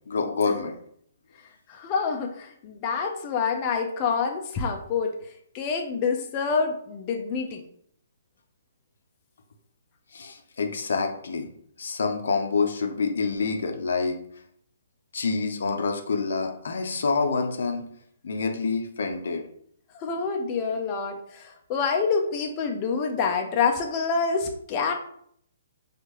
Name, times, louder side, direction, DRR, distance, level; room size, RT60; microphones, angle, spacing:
voice 1, 0.1-0.7 10.1-11.5 11.8-14.2 15.1-17.9 18.2-19.4, left 4 dB, 70° left, 4 dB, 0.6 m, -27 dB
voice 2, 1.7-5.1 5.5-7.6 19.9-24.9, left 5 dB, 30° left, 2 dB, 0.5 m, -27 dB
4.5 x 2.5 x 3.0 m, 0.66 s
hypercardioid pair, 135°, 0 cm